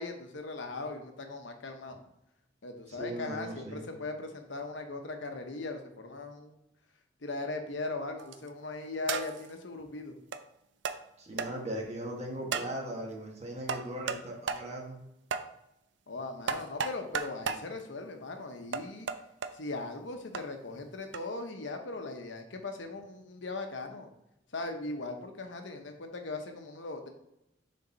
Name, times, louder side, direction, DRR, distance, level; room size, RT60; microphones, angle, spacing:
voice 1, 0.0-2.0 2.6-6.6 7.2-10.1 16.1-19.1 19.5-24.1 24.5-27.1, left 3 dB, 75° left, 5 dB, 0.9 m, -39 dB
voice 2, 2.9-3.9 11.2-15.0, right 1 dB, 35° right, -1 dB, 1.4 m, -38 dB
sound 1, 8.2-8.5 9.1-9.5 10.3-10.4 10.8-11.0 11.4-11.5 12.5-12.7 13.7-14.2 14.5-14.6 15.3-15.5 16.5-17.6 18.7-19.5 20.3-20.4 21.1-21.3, right 5 dB, 70° right, 0.4 m, -33 dB
6.7 x 3.8 x 4.0 m, 0.85 s
head